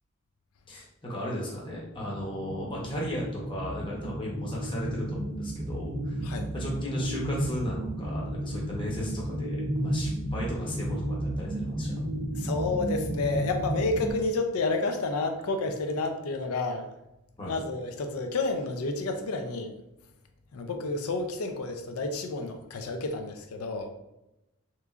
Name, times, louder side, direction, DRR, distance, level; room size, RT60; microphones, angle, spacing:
voice 1, 0.7-6.2 6.5-12.0 17.4-17.6, equal, 25° left, -4 dB, 0.7 m, -35 dB
sound 1, 1.9-14.1, right 1 dB, 25° right, 0.8 m, -33 dB
voice 2, 12.3-16.9 17.4-19.7 20.5-23.9, left 3 dB, 80° left, 5 dB, 0.5 m, -30 dB
3.5 x 3.1 x 2.4 m, 0.90 s
head